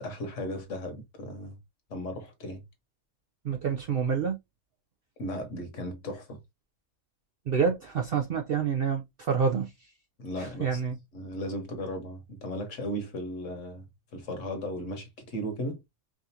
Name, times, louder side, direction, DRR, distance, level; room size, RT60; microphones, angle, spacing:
voice 1, 0.0-1.6 1.9-2.6 5.2-6.4 10.2-10.8 11.1-13.9 14.1-15.8, equal, 60° left, 1.5 m, -36 dB
voice 2, 3.4-4.4 7.5-9.9 10.4-10.9, right 6 dB, 60° right, 0.6 m, -28 dB
4.9 x 2.5 x 2.7 m
omnidirectional pair, 1.5 m